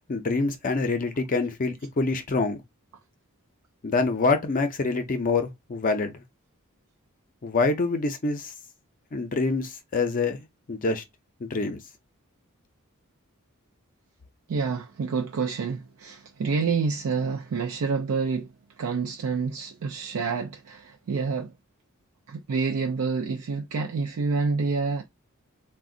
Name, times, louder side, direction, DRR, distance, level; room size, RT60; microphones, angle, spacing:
voice 1, 0.1-2.6 3.8-6.1 7.4-8.5 9.1-11.0 11.4-11.8, left 3 dB, 40° left, 0.5 m, -26 dB
voice 2, 14.5-21.5 22.3-25.0, right 5 dB, 80° right, 0.4 m, -28 dB
2.4 x 2.1 x 3.7 m
head